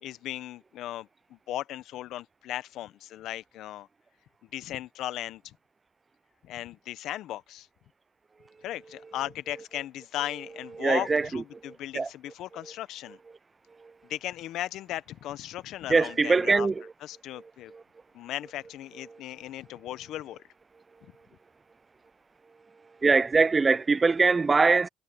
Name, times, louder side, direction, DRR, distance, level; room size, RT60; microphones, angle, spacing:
voice 1, 0.0-3.9 4.5-5.6 6.4-7.7 8.6-13.2 14.0-16.7 17.0-17.7 18.1-20.4, left 13 dB, 75° left, 0.9 m, -37 dB
voice 2, 10.8-12.1 12.6-12.7 13.8-13.9 15.9-16.9 17.4-17.5 17.7-17.8 19.1-19.2 23.0-24.9, right 4 dB, 30° right, 0.5 m, -23 dB
supercardioid pair, 65°, 0 cm